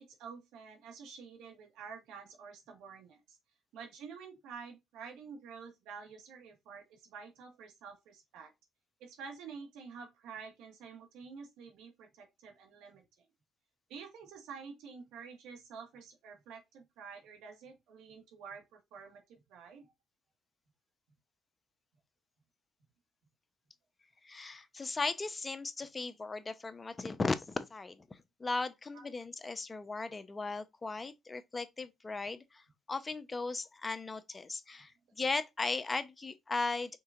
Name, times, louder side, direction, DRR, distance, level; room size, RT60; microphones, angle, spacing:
voice 1, 0.0-3.4 3.7-8.5 9.0-13.3 13.9-19.9 28.9-29.0, right 6 dB, 75° right, 1.6 m, -49 dB
voice 2, 24.2-32.6 32.9-34.9 35.2-37.0, left 3 dB, 25° left, 0.8 m, -37 dB
5.5 x 3.8 x 2.5 m
supercardioid pair, 70°, 0 cm